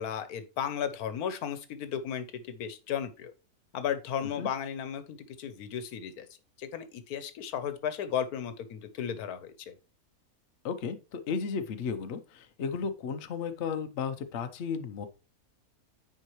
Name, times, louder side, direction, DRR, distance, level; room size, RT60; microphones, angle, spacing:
voice 1, 0.0-3.3 3.7-6.3 6.6-9.7, left 8 dB, 90° left, 11 dB, 1.3 m, -35 dB
voice 2, 10.6-15.1, left 6 dB, 60° left, 8 dB, 0.9 m, -34 dB
9.4 x 4.6 x 3.0 m, 0.31 s
omnidirectional pair, 1.6 m